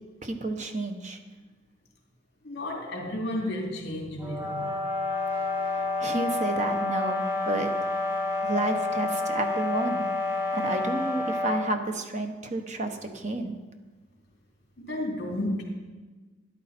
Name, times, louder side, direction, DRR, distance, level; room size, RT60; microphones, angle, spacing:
voice 1, 0.2-1.2 5.6-7.7 8.4-10.1 10.5-13.6, right 2 dB, 35° right, 5 dB, 1.0 m, -31 dB
voice 2, 2.4-4.8 14.8-15.6, left 1 dB, 55° left, -1 dB, 3.1 m, -32 dB
sound 1, 4.2-11.7, left 2 dB, 15° right, 2.4 m, -29 dB
13.0 x 10.5 x 4.3 m, 1.3 s
head